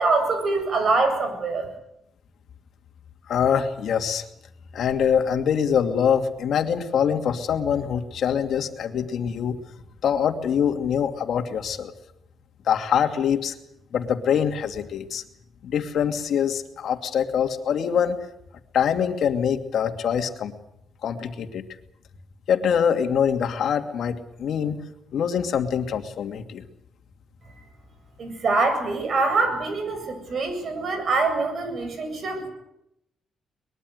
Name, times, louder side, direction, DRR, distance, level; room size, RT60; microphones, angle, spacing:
voice 1, 0.0-1.7 28.2-32.5, right 3 dB, 50° right, 7 dB, 8.0 m, -24 dB
voice 2, 3.3-4.3 4.7-9.6 10.0-11.9 12.7-13.5 13.9-15.2 15.6-18.2 18.7-20.5 21.0-21.7 22.5-24.8 25.1-26.6, left 8 dB, 70° left, 6 dB, 2.6 m, -24 dB
23.5 x 21.5 x 8.0 m, 0.80 s
cardioid pair, 110°, 0 cm